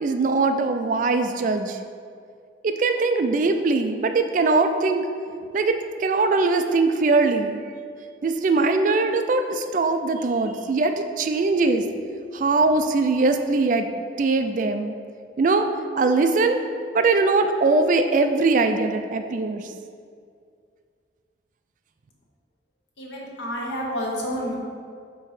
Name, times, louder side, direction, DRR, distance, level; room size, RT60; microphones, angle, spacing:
voice 1, 0.0-1.8 2.6-5.1 5.5-7.6 8.2-11.8 12.3-13.9 14.2-14.9 15.4-15.7 16.0-16.6 16.9-19.7, right 3 dB, 45° right, 7 dB, 0.3 m, -21 dB
voice 2, 23.0-24.6, equal, 75° left, -2 dB, 1.1 m, -29 dB
4.6 x 4.2 x 4.8 m, 2.2 s
head